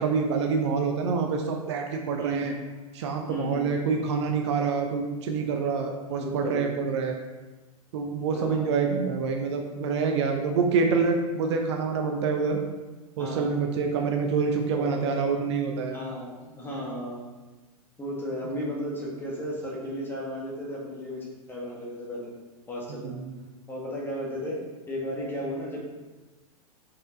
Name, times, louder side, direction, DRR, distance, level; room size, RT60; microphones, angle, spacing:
voice 1, 0.0-2.5 2.9-7.2 7.9-12.6 13.2-16.0 22.9-23.3, right 5 dB, 50° right, 3 dB, 0.8 m, -26 dB
voice 2, 2.2-2.5 3.3-3.7 6.1-6.7 8.3-8.9 13.2-13.6 14.0-14.1 14.7-14.9 15.9-17.3 18.0-22.3 22.7-23.2 23.7-24.6 24.9-25.8, equal, 10° left, -4 dB, 1.7 m, -34 dB
5.6 x 5.2 x 3.8 m, 1.2 s
figure-of-eight pair, 100°, 19 cm